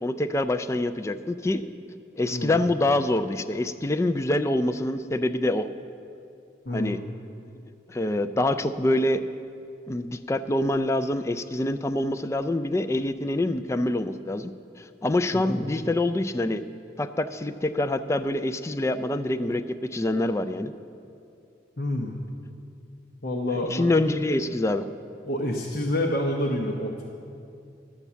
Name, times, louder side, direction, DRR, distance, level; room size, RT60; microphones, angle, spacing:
voice 1, 0.0-1.6 2.2-5.7 6.7-7.0 7.9-9.2 9.9-14.5 14.8-16.6 17.0-19.6 19.9-20.7 23.7-24.8, left 1 dB, 15° left, 9 dB, 0.3 m, -25 dB
voice 2, 6.6-7.1 15.3-15.6 21.8-22.2 23.2-23.9 25.3-27.0, left 1 dB, 55° left, 0 dB, 0.9 m, -28 dB
12.0 x 6.9 x 7.3 m, 2.6 s
head